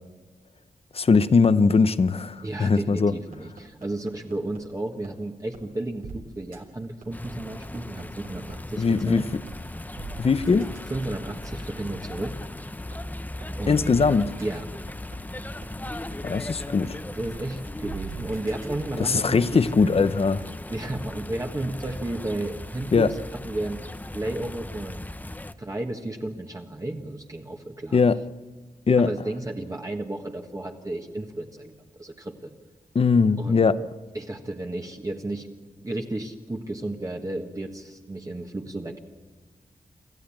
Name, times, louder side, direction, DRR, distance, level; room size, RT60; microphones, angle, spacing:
voice 1, 0.9-3.1 8.8-9.4 10.2-10.7 13.7-14.3 16.2-17.0 19.0-20.4 22.9-23.1 27.9-28.2 28.9-29.1 32.9-33.8, left 4 dB, 45° left, 0.8 m, -20 dB
voice 2, 2.4-9.3 10.5-10.6 10.9-12.3 13.6-14.0 14.4-14.7 17.1-19.4 19.7-20.1 20.7-23.2 23.4-23.8 24.1-25.1 25.6-28.0 29.0-31.7 32.0-32.5 33.4-33.7 34.1-35.5 35.8-39.0, right 2 dB, 25° right, 1.5 m, -33 dB
sound 1, 3.1-4.6 5.0-5.1 5.5-5.6 6.0-6.2 6.5-6.6 7.0-8.5 9.0-9.1 9.5-9.6 10.0-12.5 12.9-13.0 13.4-13.5 13.9-14.0 14.4-14.5 14.9-16.4 16.8-16.9 17.3-17.4 17.8-18.7, right 4 dB, 80° right, 3.5 m, -41 dB
sound 2, 7.1-25.5, left 1 dB, 10° left, 0.7 m, -37 dB
27.0 x 14.5 x 8.8 m
wide cardioid pair, 105°, 14 cm